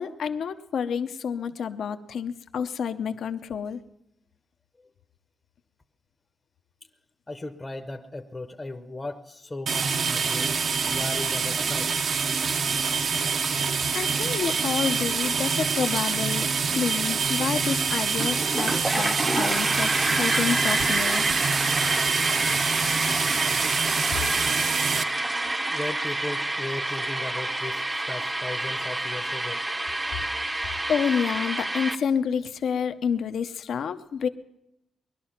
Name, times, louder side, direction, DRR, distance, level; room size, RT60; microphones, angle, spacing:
voice 1, 0.0-3.8 13.5-13.7 13.9-16.5 16.8-21.3 30.5-34.3, left 7 dB, 70° left, 10 dB, 0.7 m, -29 dB
voice 2, 7.3-10.5 10.9-11.9 23.0-23.1 25.7-29.6, left 2 dB, 20° left, 5 dB, 0.7 m, -36 dB
sound 1, 9.7-25.0, right 5 dB, 55° right, 0.7 m, -26 dB
sound 2, 18.1-31.9, right 1 dB, 15° right, 0.6 m, -28 dB
20.5 x 12.0 x 5.8 m, 0.88 s
wide cardioid pair, 140°, 0 cm